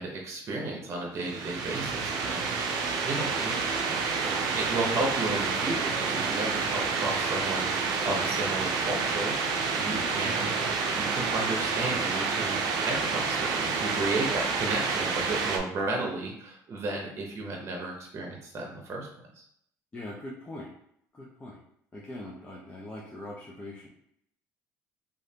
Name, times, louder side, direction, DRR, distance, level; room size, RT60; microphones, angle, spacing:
voice 1, 0.0-3.6 4.2-7.7 8.0-19.1 19.3-19.4, right 2 dB, 40° right, 0 dB, 0.8 m, -33 dB
sound 1, 1.2-15.6, right 4 dB, 70° right, 0.5 m, -29 dB
voice 2, 9.9-10.3 19.9-20.7 21.1-21.6 21.9-23.9, left 1 dB, 20° left, -5 dB, 0.7 m, -42 dB
3.1 x 2.5 x 2.7 m, 0.71 s
cardioid pair, 105°, 7 cm